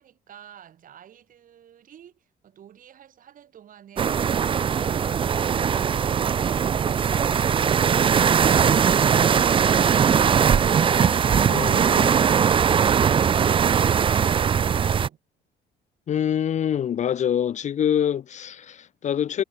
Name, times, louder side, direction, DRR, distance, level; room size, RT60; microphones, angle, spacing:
voice 1, 0.0-15.2, right 10 dB, 55° right, 5.8 m, -49 dB
sound 1, 4.0-15.1, right 7 dB, 30° right, 0.5 m, -20 dB
voice 2, 11.5-12.1 16.1-19.4, left 9 dB, 45° left, 0.8 m, -25 dB
cardioid pair, 110°, 17 cm